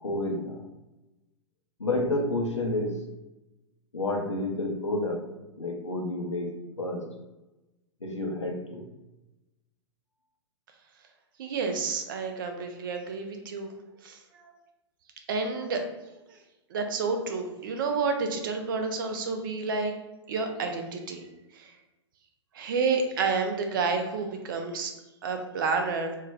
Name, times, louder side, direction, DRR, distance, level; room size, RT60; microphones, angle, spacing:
voice 1, 0.0-0.6 1.8-3.0 3.9-5.3 5.6-6.5 6.8-7.1 8.0-8.9, left 2 dB, 80° left, 1 dB, 0.7 m, -29 dB
voice 2, 11.4-13.7 14.0-14.2 14.4-14.5 15.3-15.8 16.7-19.9 20.3-21.2 21.6-21.7 22.5-24.9 25.2-26.2, right 4 dB, 45° right, 5 dB, 0.5 m, -29 dB
3.2 x 2.2 x 3.4 m, 1.0 s
figure-of-eight pair, 105°, 15 cm